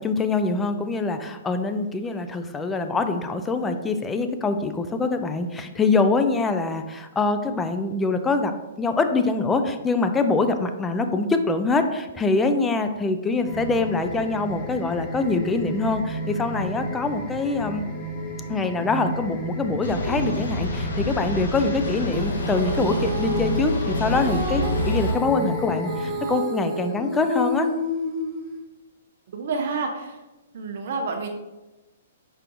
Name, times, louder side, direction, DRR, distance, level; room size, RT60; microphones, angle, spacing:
voice 1, 0.0-17.9 18.5-27.7, left 3 dB, 15° left, 7 dB, 0.4 m, -24 dB
sound 1, 13.5-26.3, equal, 35° left, 0.7 m, -33 dB
sound 2, 19.8-25.1, left 1 dB, 80° left, 0.8 m, -28 dB
Female singing, 22.1-28.6, left 1 dB, 20° right, 1.0 m, -30 dB
voice 2, 29.3-30.1 30.5-31.3, right 4 dB, 60° right, 3 dB, 0.5 m, -29 dB
4.6 x 4.4 x 2.6 m, 1.1 s
hypercardioid pair, 130°, 0 cm